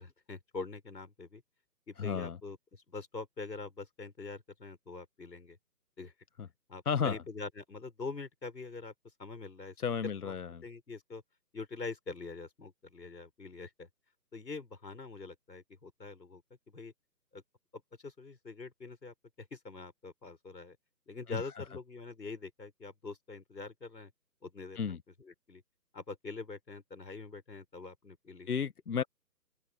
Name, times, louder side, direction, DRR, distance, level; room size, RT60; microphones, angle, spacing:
voice 1, 0.0-1.4 1.9-5.6 6.0-6.1 6.7-8.9 9.2-9.8 10.2-10.4 10.6-11.2 11.5-13.9 14.3-16.4 16.7-16.9 17.3-17.4 18.0-20.8 21.1-24.1 24.4-25.6 25.9-28.5, left 3 dB, 85° left, 7.0 m, -44 dB
voice 2, 2.0-2.4 6.8-7.2 9.8-10.6 21.3-21.4 24.7-25.0 28.5-29.0, left 6 dB, 60° left, 1.3 m, -33 dB
open air
figure-of-eight pair, 155°, 50 cm